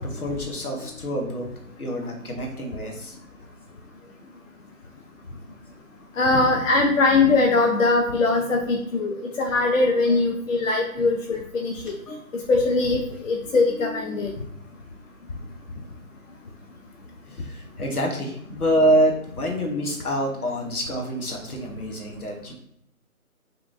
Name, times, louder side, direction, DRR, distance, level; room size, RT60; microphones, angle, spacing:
voice 1, 0.0-1.5 1.8-3.1 10.1-10.2 12.1-12.3 17.3-22.5, right 1 dB, 85° left, 1 dB, 1.0 m, -26 dB
voice 2, 6.2-11.7 12.5-14.3, left 3 dB, 60° left, 0 dB, 0.5 m, -21 dB
2.8 x 2.5 x 2.5 m, 0.75 s
figure-of-eight pair, 155°, 44 cm